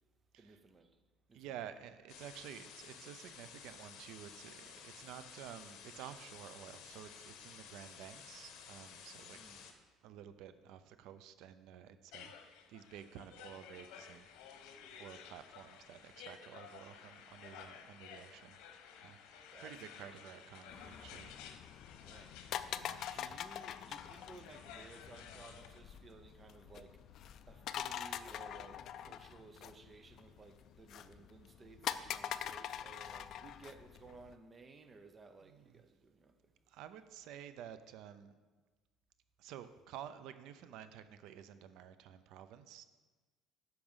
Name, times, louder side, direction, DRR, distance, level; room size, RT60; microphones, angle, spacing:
voice 1, 0.4-0.9 1.3-1.4 9.3-9.6 19.5-19.8 22.0-22.4 23.1-27.0 27.5-36.3, right 3 dB, 20° right, 0.6 m, -57 dB
voice 2, 1.3-9.4 10.0-14.6 15.0-18.6 19.0-21.3 22.7-23.0 35.4-35.8 36.7-38.3 39.4-42.8, right 10 dB, 65° right, 0.5 m, -52 dB
sound 1, 2.1-9.7, left 7 dB, 65° left, 1.3 m, -54 dB
sound 2, 12.1-25.8, left 7 dB, 90° left, 1.0 m, -54 dB
sound 3, 20.7-34.3, left 10 dB, 45° left, 0.4 m, -45 dB
10.0 x 6.0 x 5.5 m
cardioid pair, 165°, 0 cm